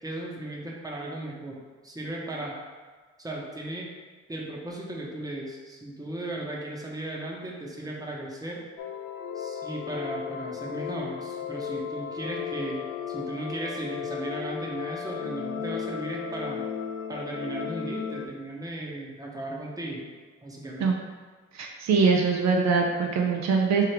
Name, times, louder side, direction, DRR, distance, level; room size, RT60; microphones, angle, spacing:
voice 1, 0.0-2.6 3.2-3.9 4.3-8.6 9.3-16.7 17.1-20.0 20.4-20.9, right 1 dB, 10° right, -3 dB, 1.0 m, -36 dB
sound 1, 8.8-18.3, left 8 dB, 85° left, 0.5 m, -35 dB
voice 2, 21.5-23.8, right 5 dB, 65° right, 0 dB, 0.6 m, -23 dB
3.5 x 3.4 x 4.5 m, 1.4 s
cardioid pair, 90°, 30 cm